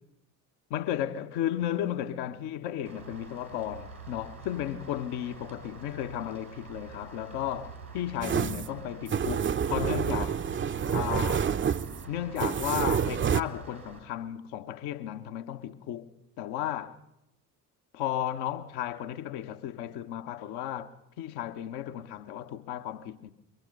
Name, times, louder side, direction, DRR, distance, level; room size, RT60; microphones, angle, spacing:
voice 1, 0.7-10.4 10.9-11.5 12.1-17.0 17.9-23.3, left 11 dB, 55° left, 1.3 m, -34 dB
Rain, 2.8-14.0, right 4 dB, 90° right, 3.3 m, -47 dB
sound 1, 8.2-13.4, right 7 dB, 25° right, 0.8 m, -28 dB
24.5 x 23.5 x 5.3 m
figure-of-eight pair, 50°, 45 cm